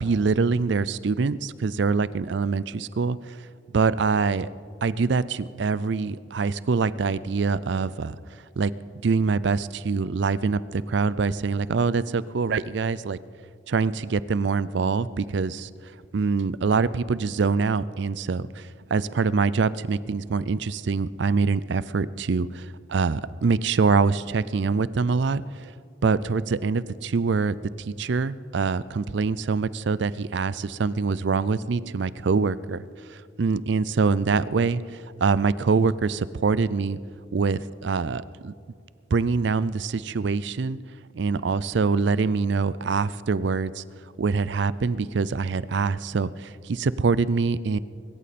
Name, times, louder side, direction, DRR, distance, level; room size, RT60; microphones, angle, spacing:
voice 1, 0.0-3.4 3.7-4.5 4.8-8.2 8.6-8.7 9.0-13.2 13.7-15.7 16.1-25.7 26.0-32.8 33.1-37.0 37.3-38.5 39.1-40.8 41.1-43.8 44.2-47.8, right 4 dB, 65° right, 18 dB, 0.4 m, -24 dB
24.0 x 13.5 x 4.3 m, 2.2 s
head